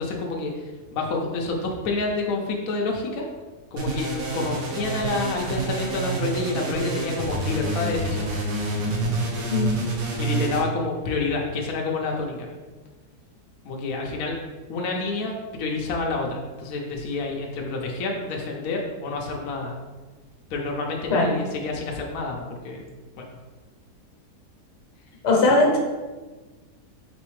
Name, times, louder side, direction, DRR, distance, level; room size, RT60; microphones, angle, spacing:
voice 1, 0.0-3.3 3.7-8.3 10.2-12.5 13.6-14.4 14.7-19.8 20.5-22.8 23.2-23.3 25.5-25.6, left 3 dB, 70° left, 0 dB, 1.0 m, -28 dB
sound 1, 3.8-10.6, right 2 dB, 65° right, 1.2 m, -28 dB
voice 2, 9.5-9.9 21.1-21.3 25.2-25.8, left 2 dB, 85° left, 0 dB, 1.5 m, -19 dB
4.1 x 4.0 x 3.1 m, 1.3 s
omnidirectional pair, 1.7 m